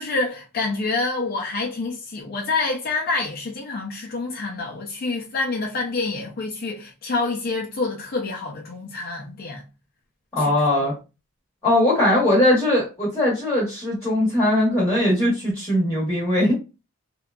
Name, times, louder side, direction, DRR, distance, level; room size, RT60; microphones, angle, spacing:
voice 1, 0.0-9.6 10.4-10.9, left 3 dB, 45° left, 0.4 m, -27 dB
voice 2, 10.3-10.9 11.6-16.5, left 1 dB, 15° left, 0.9 m, -20 dB
2.7 x 2.1 x 2.3 m
head